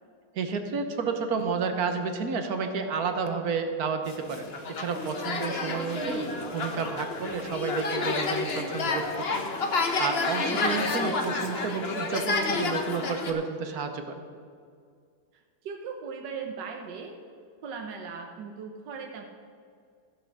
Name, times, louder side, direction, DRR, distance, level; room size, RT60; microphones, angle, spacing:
voice 1, 0.3-9.4 9.9-14.2, right 5 dB, 60° right, 6 dB, 1.5 m, -31 dB
sound 1, 4.1-13.3, left 3 dB, 40° left, 1.1 m, -30 dB
voice 2, 15.3-17.2 17.6-19.2, right 5 dB, 90° right, 2 dB, 1.6 m, -38 dB
15.0 x 5.8 x 6.6 m, 2.2 s
omnidirectional pair, 1.9 m